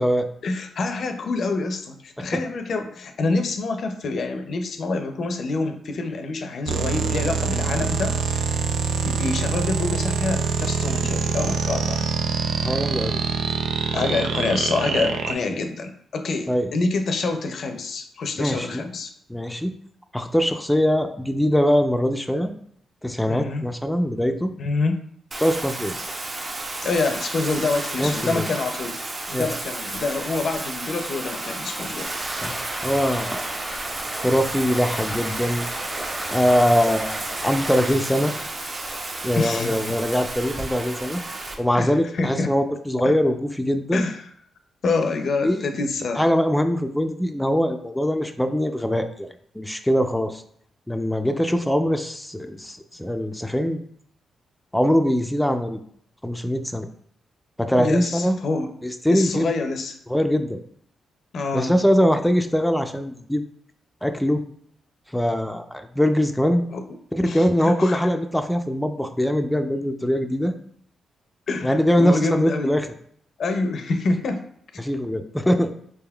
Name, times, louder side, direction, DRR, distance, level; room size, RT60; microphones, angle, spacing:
voice 1, 0.4-8.4 9.0-12.1 13.9-19.1 23.3-23.6 24.6-25.0 26.8-29.0 29.3-32.1 39.3-39.9 41.7-42.5 43.0-43.1 43.9-44.3 44.8-46.2 57.7-58.7 59.1-60.0 61.3-61.7 66.7-66.8 67.2-68.1 71.5-72.7 73.4-74.5, left 3 dB, 65° left, 7 dB, 0.5 m, -26 dB
sound 1, 6.7-15.3, right 5 dB, 80° right, 0.3 m, -25 dB
voice 2, 12.6-13.2 15.5-15.6 16.5-16.7 18.4-18.9 19.3-19.7 20.1-22.5 23.0-24.5 25.4-25.9 28.0-28.4 29.3-29.5 32.4-33.4 34.1-35.7 36.3-38.3 39.2-41.2 41.6-44.1 45.4-45.7 46.2-49.3 49.6-50.4 50.9-53.8 54.7-55.8 56.2-56.9 57.6-58.4 58.8-59.5 60.1-60.6 61.5-63.4 64.0-64.4 65.1-66.6 67.1-70.5 71.6-72.9 74.8-75.7, equal, 5° left, 6 dB, 0.4 m, -22 dB
Bathtub (filling or washing), 25.3-41.5, right 2 dB, 40° right, 0.7 m, -32 dB
sound 2, 32.0-37.9, right 1 dB, 20° right, 1.0 m, -34 dB
4.1 x 3.5 x 2.3 m, 0.65 s
cardioid pair, 65°, 0 cm